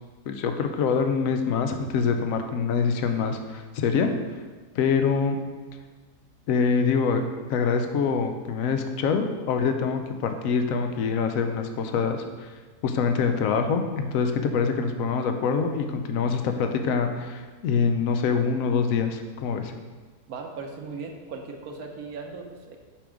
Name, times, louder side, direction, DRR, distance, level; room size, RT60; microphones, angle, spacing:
voice 1, 0.3-4.1 4.7-5.4 6.5-7.2 7.5-12.5 12.8-19.7, left 5 dB, 70° left, 6 dB, 1.0 m, -25 dB
voice 2, 20.3-22.8, right 4 dB, 75° right, 3 dB, 1.3 m, -38 dB
5.9 x 5.2 x 4.9 m, 1.4 s
omnidirectional pair, 1.6 m